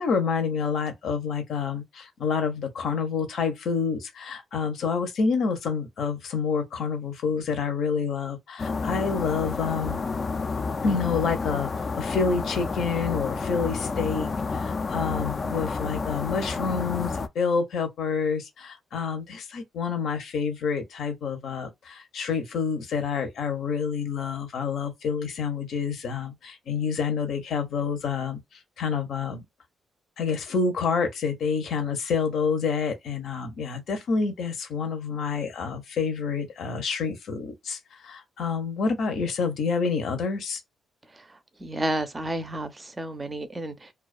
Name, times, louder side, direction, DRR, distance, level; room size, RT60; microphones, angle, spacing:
voice 1, 0.0-10.0 10.8-11.7 12.0-28.4 28.8-29.4 30.2-40.6, left 5 dB, 70° left, 0.7 m, -28 dB
sound 1, 8.6-17.3, left 4 dB, 35° left, 0.3 m, -30 dB
voice 2, 41.6-43.9, right 1 dB, 20° right, 0.5 m, -31 dB
2.3 x 2.2 x 2.4 m
cardioid pair, 105°, 0 cm